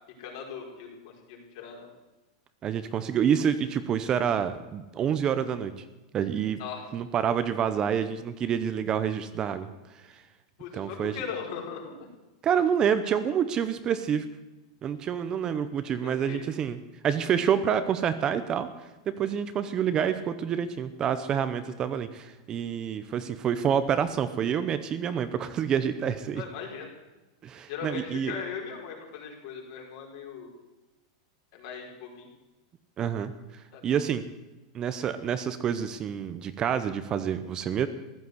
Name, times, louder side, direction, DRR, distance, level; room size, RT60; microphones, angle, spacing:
voice 1, 0.2-1.9 6.6-6.9 10.6-12.1 16.0-16.4 26.4-26.9 27.7-30.6 31.5-32.3 33.7-33.8, left 6 dB, 55° left, 0 dB, 4.7 m, -39 dB
voice 2, 2.6-5.8 6.1-6.6 6.9-9.7 10.7-11.2 12.4-14.3 14.8-18.7 19.2-26.4 27.4-28.3 33.0-34.2 34.7-37.9, right 8 dB, 25° right, 11 dB, 0.7 m, -28 dB
15.0 x 11.5 x 8.0 m, 1.1 s
supercardioid pair, 155°, 3 cm